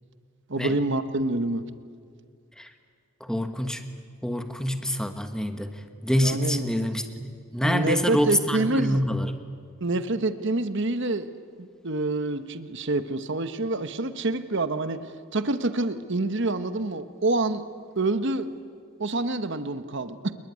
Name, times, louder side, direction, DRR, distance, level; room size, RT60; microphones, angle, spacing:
voice 1, 0.5-1.7 6.2-6.6 7.6-9.0 9.8-11.3 11.6-17.6 18.0-18.5 19.0-20.3, right 2 dB, 55° right, 11 dB, 1.1 m, -27 dB
voice 2, 3.2-3.8 4.2-9.3, equal, 5° left, 7 dB, 1.4 m, -26 dB
27.5 x 21.0 x 9.6 m, 2.1 s
head